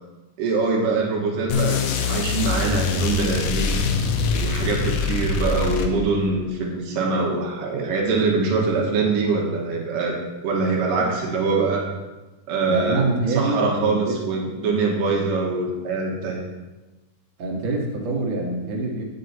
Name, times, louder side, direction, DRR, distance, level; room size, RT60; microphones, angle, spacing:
voice 1, 0.4-3.8 4.3-10.2 10.4-11.9 12.5-13.1 13.3-16.4, right 4 dB, 75° right, 0 dB, 3.0 m, -23 dB
sound 1, 1.5-6.3, left 5 dB, 90° left, 2.5 m, -24 dB
voice 2, 12.7-14.2 17.4-19.0, right 2 dB, 55° right, -1 dB, 2.5 m, -25 dB
9.4 x 8.3 x 4.1 m, 1.1 s
omnidirectional pair, 3.9 m